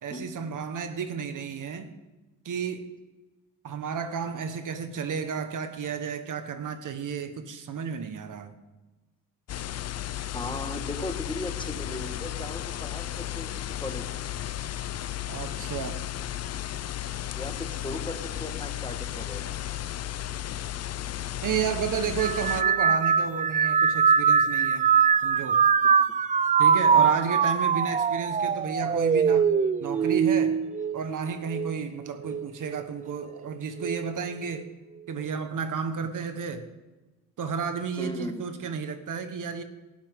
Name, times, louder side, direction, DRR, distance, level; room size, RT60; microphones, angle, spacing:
voice 1, 0.0-1.9 2.4-2.9 3.6-8.5 15.3-16.0 21.4-24.9 25.2-25.6 26.6-29.5 29.8-30.6 30.9-34.7 35.1-36.7 37.4-39.6, right 6 dB, 55° right, 8 dB, 1.4 m, -32 dB
sound 1, 9.5-22.6, left 12 dB, 45° left, 0.5 m, -34 dB
voice 2, 10.3-14.2 17.3-19.5 38.0-38.4, left 1 dB, 15° left, 6 dB, 1.5 m, -37 dB
sound 2, 22.2-31.8 32.2-32.8 33.8-34.1, right 6 dB, 20° right, 0.3 m, -23 dB
18.5 x 12.5 x 3.7 m, 1.2 s
cardioid pair, 105°, 37 cm